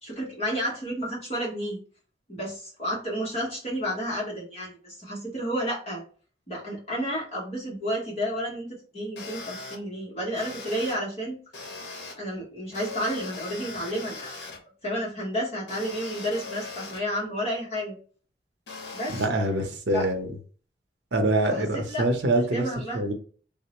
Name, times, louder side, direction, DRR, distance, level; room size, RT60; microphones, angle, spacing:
voice 1, 0.0-1.8 2.3-6.0 6.5-11.4 12.2-14.4 14.8-18.0 18.9-19.2 19.9-20.0 21.5-22.0 22.5-23.0, equal, 35° left, 1.0 m, -31 dB
sound 1, 9.2-9.8 10.3-10.9 11.5-12.1 12.7-14.6 15.7-17.0 18.7-19.3, left 3 dB, 75° left, 0.8 m, -39 dB
voice 2, 19.2-20.3 21.1-22.6 22.9-23.1, right 2 dB, 75° right, 0.6 m, -24 dB
3.6 x 2.0 x 2.8 m
head